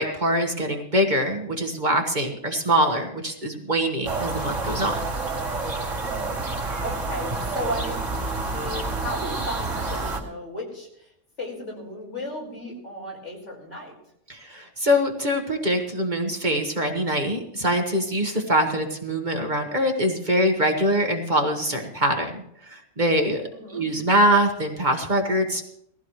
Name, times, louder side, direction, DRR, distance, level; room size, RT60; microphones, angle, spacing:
voice 1, 0.0-5.1 14.3-25.6, equal, 40° right, 2 dB, 1.6 m, -23 dB
sound 1, 4.0-10.2, right 3 dB, 80° right, 2.9 m, -28 dB
voice 2, 6.0-6.5 6.8-8.1 8.5-11.1 11.4-13.9 23.5-23.9, equal, 70° left, -3 dB, 5.5 m, -35 dB
20.5 x 15.0 x 3.2 m, 0.74 s
omnidirectional pair, 1.3 m